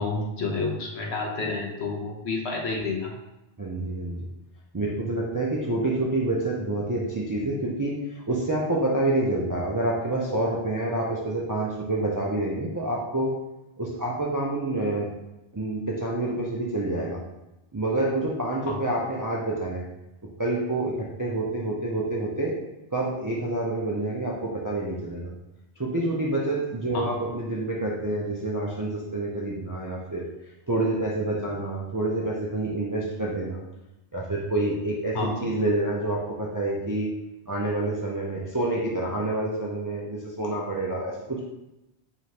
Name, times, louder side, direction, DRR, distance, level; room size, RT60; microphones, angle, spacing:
voice 1, 0.0-3.1 18.6-18.7 26.9-27.2 35.1-35.5, left 3 dB, 80° left, 0 dB, 1.1 m, -29 dB
voice 2, 3.6-4.3 4.7-13.4 13.8-15.1 15.5-17.2 17.7-19.9 20.4-22.6 22.9-25.3 25.8-30.2 30.7-33.6 34.1-37.1 37.5-41.4, right 2 dB, 35° right, -4 dB, 0.3 m, -28 dB
4.8 x 2.9 x 2.8 m, 0.94 s
omnidirectional pair, 1.1 m